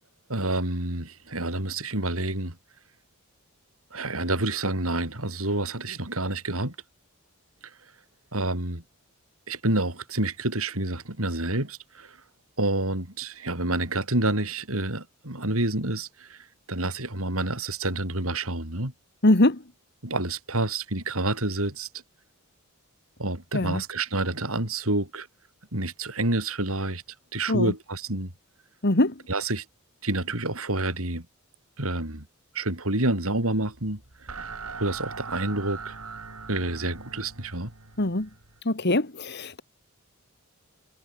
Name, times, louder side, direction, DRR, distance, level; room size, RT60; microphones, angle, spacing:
voice 1, 0.3-2.6 3.9-6.8 7.6-7.7 8.3-8.8 9.5-12.2 12.6-18.9 20.0-21.9 23.2-25.3 25.7-27.0 27.3-28.3 29.3-29.7 30.0-31.3 31.8-32.3 32.5-34.0 34.3-34.5 34.8-36.0 36.5-37.7, right 2 dB, 70° right, 5.4 m, -28 dB
voice 2, 19.2-19.6 23.5-23.8 27.5-27.7 28.8-29.1 38.0-38.3 38.7-39.6, left 1 dB, 50° left, 1.8 m, -22 dB
sound 1, 33.7-38.6, right 4 dB, 85° right, 4.3 m, -41 dB
head